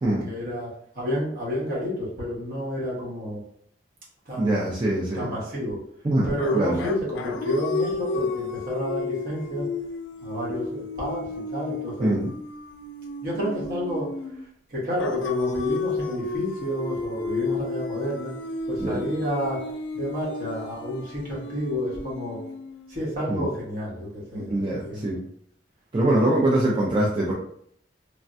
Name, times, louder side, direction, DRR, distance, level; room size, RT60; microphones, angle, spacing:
voice 1, 0.0-3.4 4.3-4.6 5.1-5.8 6.3-9.7 10.2-12.1 13.2-14.1 14.7-18.3 18.7-19.6 19.9-22.4 22.9-25.0, equal, 55° right, -5 dB, 1.2 m, -30 dB
voice 2, 4.4-5.3 6.0-6.8 12.0-12.3 18.8-19.0 23.3-23.5 24.3-25.2 25.9-27.3, right 1 dB, 25° right, -4 dB, 0.4 m, -23 dB
sound 1, 6.4-14.4 15.0-23.1, left 3 dB, 80° left, 0.3 m, -32 dB
3.2 x 2.2 x 2.6 m, 0.66 s
head